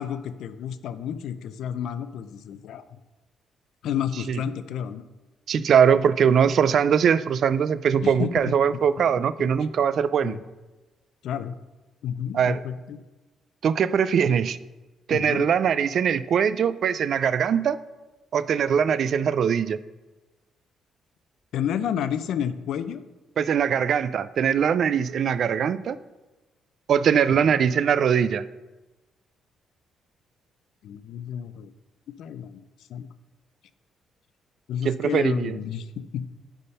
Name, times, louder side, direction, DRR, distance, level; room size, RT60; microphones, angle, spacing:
voice 1, 0.0-2.8 3.8-5.0 8.0-8.8 10.2-10.4 11.2-11.6 12.0-13.0 15.1-15.5 21.5-23.0 27.3-27.6 30.8-31.7 32.2-32.6 32.9-33.1 34.7-36.3, left 9 dB, 75° left, 12 dB, 0.5 m, -31 dB
voice 2, 5.5-10.4 12.3-12.6 13.6-14.6 15.1-17.8 18.3-19.8 23.4-26.0 26.9-28.4 34.8-35.6, right 7 dB, 60° right, 16 dB, 0.3 m, -21 dB
9.8 x 3.5 x 5.4 m, 1.1 s
cardioid pair, 90°, 0 cm